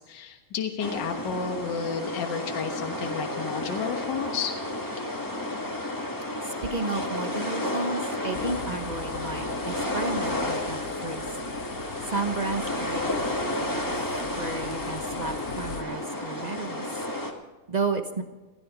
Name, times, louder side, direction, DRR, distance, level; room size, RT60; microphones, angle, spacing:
voice 1, 0.0-4.5, left 6 dB, 60° left, 4 dB, 1.9 m, -32 dB
sound 1, 0.8-17.3, left 1 dB, 10° left, 1.5 m, -32 dB
voice 2, 6.4-11.4 12.0-14.1 14.3-16.9 17.7-18.2, right 3 dB, 55° right, 6 dB, 0.4 m, -33 dB
sound 2, 8.3-15.8, left 9 dB, 85° left, 0.7 m, -42 dB
17.0 x 15.0 x 5.0 m, 1.2 s
omnidirectional pair, 2.4 m